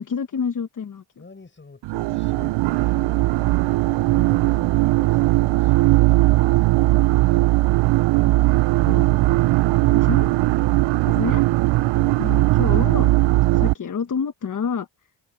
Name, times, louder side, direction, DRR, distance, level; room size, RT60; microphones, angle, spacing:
voice 1, 0.0-1.0 4.0-4.3 8.2-8.5 8.8-9.2 9.9-10.3 11.1-11.4 12.2-13.1 13.5-14.9, left 6 dB, 45° left, 1.3 m, -28 dB
voice 2, 1.2-3.4 3.9-8.0 10.6-11.0 11.9-12.3, left 3 dB, 25° left, 7.3 m, -48 dB
sound 1, 1.8-13.7, right 19 dB, 85° right, 0.5 m, -18 dB
cardioid pair, 90°, 43 cm